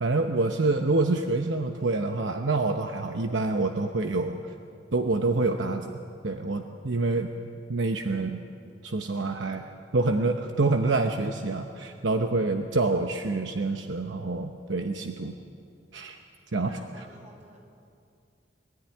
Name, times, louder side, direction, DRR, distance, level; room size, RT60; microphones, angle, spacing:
voice 1, 0.0-4.4 4.9-6.0 6.2-7.3 7.7-8.4 8.8-9.6 9.9-15.3 15.9-16.2 16.5-17.0, right 3 dB, 75° right, 5 dB, 0.9 m, -27 dB
voice 2, 16.6-17.6, right 1 dB, 40° right, 0 dB, 4.9 m, -53 dB
22.5 x 13.5 x 9.9 m, 2.5 s
head